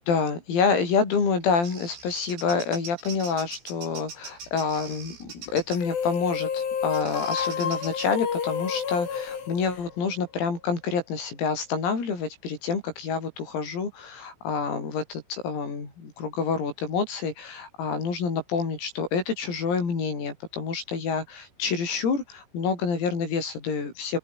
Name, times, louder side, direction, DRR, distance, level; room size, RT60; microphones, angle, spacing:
voice 1, 0.1-24.2, left 5 dB, 85° left, 10.5 m, -28 dB
Bird vocalization bird call bird song, 1.2-5.9 6.9-8.1, right 5 dB, 60° right, 9.5 m, -42 dB
sound 1, 5.7-10.4, left 7 dB, 65° left, 7.2 m, -30 dB
open air
omnidirectional pair, 6.0 m